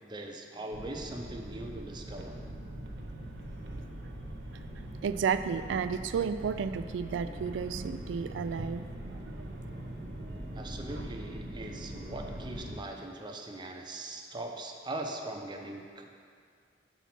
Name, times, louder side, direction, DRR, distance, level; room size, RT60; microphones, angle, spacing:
voice 1, 0.0-2.4 10.5-16.0, right 2 dB, 25° right, 2 dB, 0.5 m, -41 dB
sound 1, 0.7-12.8, right 1 dB, 65° right, 0.8 m, -42 dB
voice 2, 5.0-8.9 9.4-9.5, right 6 dB, 85° right, 11 dB, 0.3 m, -32 dB
5.8 x 4.1 x 5.8 m, 2.1 s
head